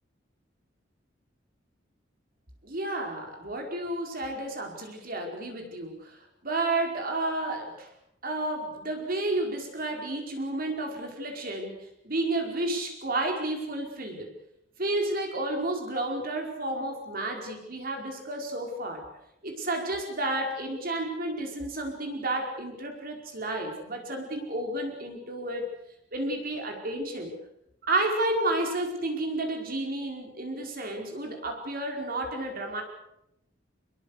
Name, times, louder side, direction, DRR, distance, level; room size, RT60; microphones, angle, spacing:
voice 1, 2.6-6.2 6.4-7.9 8.2-14.3 14.8-19.1 19.4-25.7 26.1-27.3 27.9-32.8, right 2 dB, 50° right, 2 dB, 5.1 m, -31 dB
25.5 x 21.5 x 6.7 m, 0.81 s
head